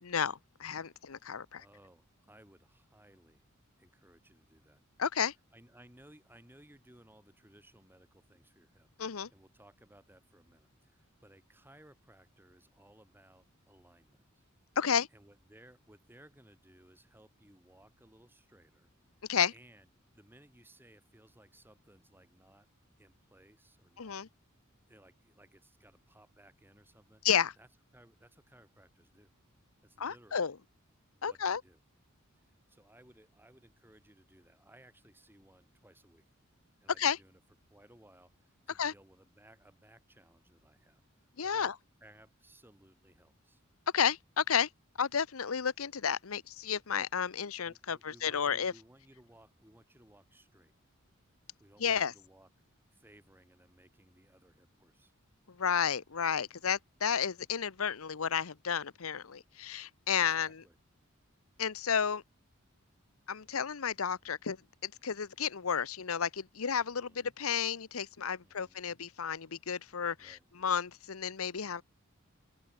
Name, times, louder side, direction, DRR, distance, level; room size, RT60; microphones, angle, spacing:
voice 1, 0.0-1.6 5.0-5.3 9.0-9.3 14.8-15.1 19.3-19.5 24.0-24.3 27.2-27.5 30.0-30.6 31.2-31.6 37.0-37.2 38.8-38.9 41.4-41.7 43.9-44.7 45.0-48.7 51.8-52.1 55.5-60.6 61.6-62.2 63.3-64.6 64.8-71.8, left 7 dB, 85° left, 0.8 m, -32 dB
voice 2, 1.6-3.4 3.8-4.8 5.5-8.9 9.3-14.5 15.1-18.9 19.5-19.9 20.1-22.7 23.0-24.2 24.9-27.2 27.6-27.7 27.9-29.3 29.8-30.5 31.1-31.8 32.4-36.3 36.8-37.4 37.7-41.7 42.0-43.6 47.6-50.7 51.6-52.5 52.9-55.1 60.2-60.8 66.8-67.4 68.4-69.0 70.2-70.4, right 1 dB, 10° right, 6.3 m, -61 dB
open air
head